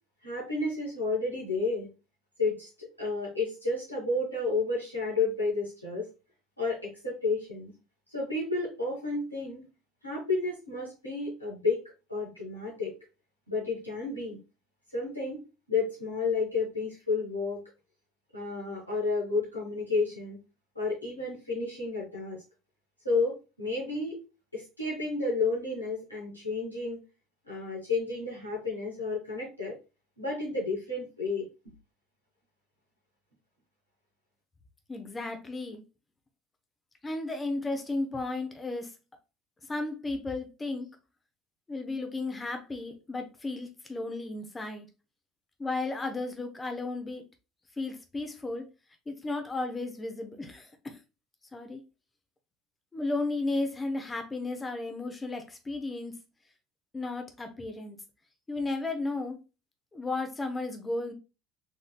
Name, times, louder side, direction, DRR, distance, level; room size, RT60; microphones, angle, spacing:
voice 1, 0.2-1.9 2.4-6.1 6.6-7.7 8.1-9.6 10.0-11.8 12.1-12.9 13.5-14.4 14.9-15.4 15.7-17.6 18.3-20.4 20.7-22.4 23.0-24.2 24.5-27.0 27.4-29.8 30.2-31.4, left 3 dB, 85° left, 1.8 m, -31 dB
voice 2, 34.9-35.8 37.0-38.9 39.7-40.9 41.7-44.9 45.6-47.2 47.8-48.7 49.1-51.0 51.5-51.8 52.9-56.2 56.9-58.0 58.5-59.4 59.9-61.1, left 2 dB, 20° left, 0.9 m, -34 dB
4.0 x 3.7 x 2.3 m
figure-of-eight pair, 65°, 0 cm